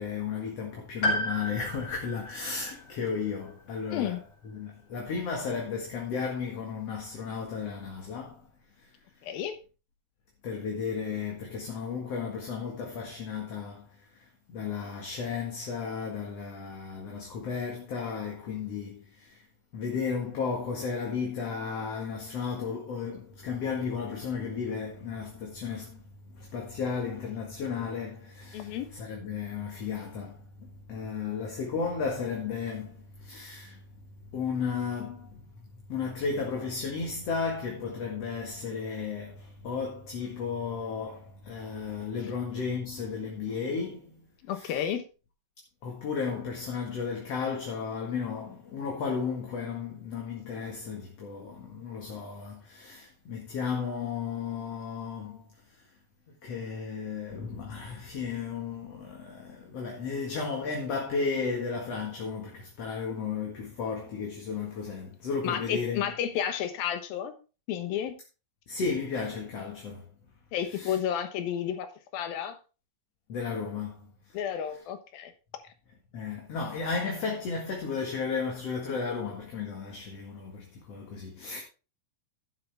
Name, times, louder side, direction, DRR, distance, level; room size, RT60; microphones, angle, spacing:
voice 1, 0.0-4.2 4.5-8.4 10.4-13.9 14.1-19.4 19.7-26.0 26.3-30.4 30.9-33.8 34.3-35.4 35.9-44.2 44.5-44.7 45.8-55.4 56.4-66.1 68.7-70.1 70.7-71.0 73.3-74.1 76.1-81.6, left 5 dB, 50° left, 2.6 m, -34 dB
Piano, 1.0-4.9 5.2-5.3 6.4-6.5, equal, 35° left, 4.6 m, -35 dB
voice 2, 9.2-9.5 28.5-28.9 44.5-45.0 65.4-67.3 67.7-68.1 70.5-71.9 72.1-72.6 74.3-75.3, left 9 dB, 85° left, 3.1 m, -31 dB
11.5 x 9.6 x 3.5 m
omnidirectional pair, 4.1 m